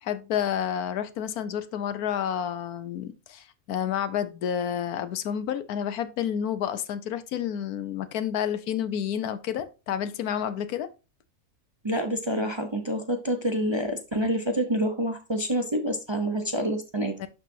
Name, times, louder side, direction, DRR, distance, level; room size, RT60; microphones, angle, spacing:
voice 1, 0.0-10.9 17.2-17.3, left 9 dB, 75° left, 1.2 m, -30 dB
voice 2, 11.8-17.2, equal, 25° right, 0.6 m, -27 dB
11.5 x 4.1 x 2.7 m
omnidirectional pair, 1.6 m